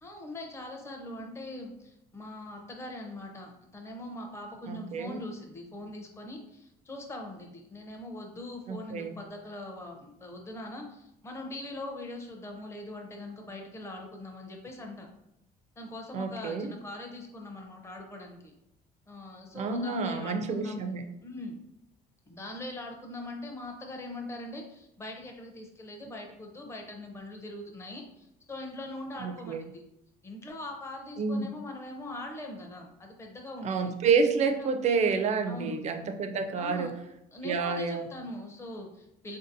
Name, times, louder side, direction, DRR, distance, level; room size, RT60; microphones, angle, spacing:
voice 1, 0.0-15.1 15.8-18.5 19.1-20.9 21.2-21.6 22.3-29.8 30.2-33.9 34.6-34.7 35.5-35.8 36.6-36.9 37.3-39.4, left 1 dB, 15° left, 2 dB, 0.5 m, -42 dB
voice 2, 4.7-5.2 8.7-9.2 16.1-16.7 19.5-21.1 29.2-29.7 31.2-31.5 33.6-36.9 37.4-38.1, right 5 dB, 45° right, 6 dB, 0.4 m, -29 dB
3.9 x 2.6 x 2.6 m, 0.82 s
cardioid pair, 130°, 17 cm